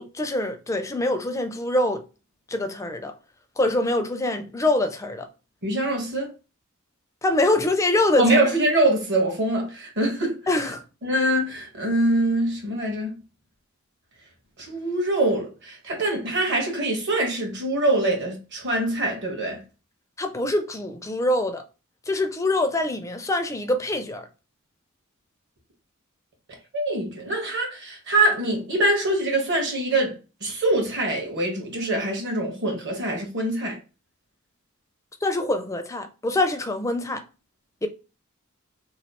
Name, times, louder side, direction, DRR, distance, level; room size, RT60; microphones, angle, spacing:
voice 1, 0.0-2.0 2.5-3.1 3.6-5.3 7.2-8.5 10.5-10.8 20.2-21.6 22.1-24.2 35.2-37.2 37.8-37.9, left 1 dB, 15° left, 0.4 m, -24 dB
voice 2, 5.6-6.3 8.2-10.4 11.0-13.2 14.6-19.6 26.7-30.1 30.4-33.8, right 1 dB, 55° right, 1.3 m, -24 dB
3.1 x 2.4 x 4.2 m
head